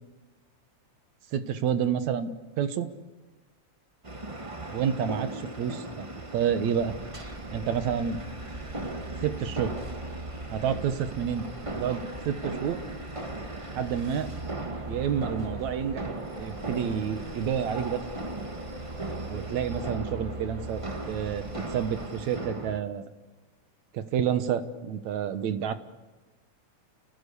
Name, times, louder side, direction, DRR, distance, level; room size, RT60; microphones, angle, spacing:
voice 1, 1.3-2.9 4.7-6.9 7.5-8.2 9.2-9.7 10.5-11.5 11.7-12.8 13.8-14.3 14.9-16.0 16.4-18.0 19.3-20.8 21.1-21.4 21.7-23.1 23.9-25.8, right 8 dB, 70° right, 10 dB, 2.5 m, -29 dB
sound 1, 4.0-22.8, right 2 dB, 50° right, 0.4 m, -38 dB
sound 2, 6.8-22.1, right 2 dB, 25° right, 1.1 m, -42 dB
30.0 x 18.5 x 8.4 m, 1.2 s
omnidirectional pair, 3.4 m